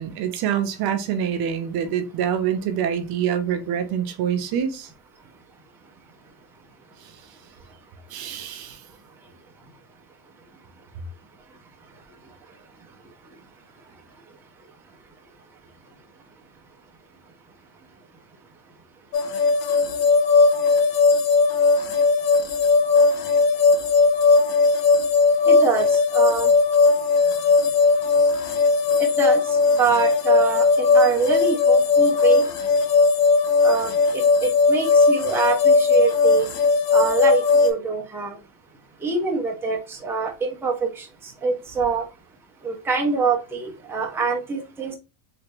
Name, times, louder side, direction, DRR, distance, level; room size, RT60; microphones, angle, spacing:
voice 1, 0.0-4.9 8.1-8.8, right 8 dB, 55° right, 0.7 m, -25 dB
sound 1, 19.1-37.7, left 4 dB, 50° left, 0.8 m, -18 dB
voice 2, 25.4-26.5 29.0-32.5 33.6-36.5 36.9-38.4 39.0-42.1 42.6-44.9, right 4 dB, 5° right, 0.6 m, -25 dB
3.3 x 2.8 x 3.0 m
cardioid pair, 140°, 46 cm